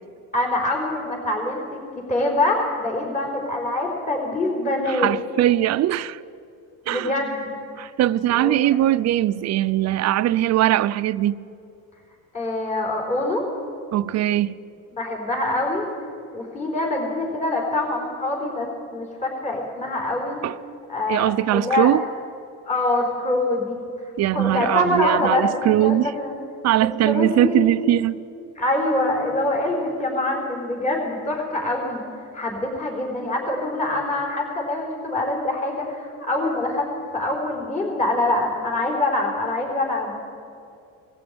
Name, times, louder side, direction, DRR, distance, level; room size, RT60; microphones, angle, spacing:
voice 1, 0.3-1.8 2.1-5.1 6.9-7.6 8.3-8.6 12.3-13.4 15.0-15.9 16.3-20.4 20.9-21.9 22.7-23.8 24.3-26.3 27.0-27.7 28.6-32.0 32.3-40.2, left 2 dB, 25° left, 4.3 m, -24 dB
voice 2, 4.9-6.2 6.9-7.1 7.8-11.4 13.9-14.6 20.4-20.6 21.1-22.0 24.2-26.1 26.6-28.2, right 13 dB, 55° right, 0.6 m, -21 dB
20.0 x 15.0 x 8.8 m
cardioid pair, 125°, 32 cm